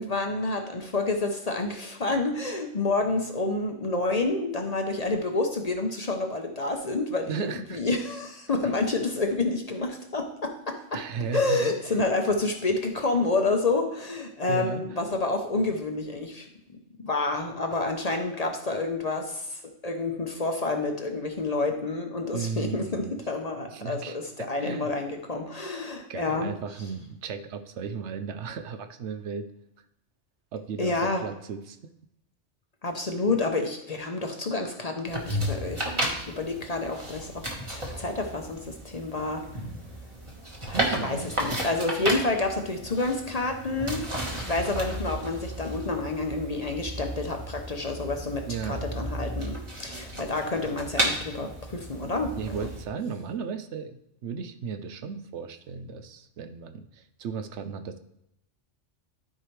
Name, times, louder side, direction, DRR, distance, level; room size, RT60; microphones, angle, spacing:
voice 1, 0.0-7.4 7.7-11.0 11.3-16.5 17.0-26.5 30.8-31.3 32.8-39.4 40.7-44.1 44.3-52.7, left 3 dB, 40° left, 4 dB, 0.7 m, -29 dB
voice 2, 7.2-7.8 10.9-11.7 14.5-14.8 22.3-23.2 23.7-24.9 26.1-29.5 30.5-31.8 40.6-41.3 48.5-48.8 52.4-58.0, right 6 dB, 70° right, 9 dB, 0.9 m, -35 dB
sound 1, 35.1-52.8, right 1 dB, 25° right, 1.4 m, -33 dB
12.5 x 4.7 x 3.2 m, 0.80 s
omnidirectional pair, 1.2 m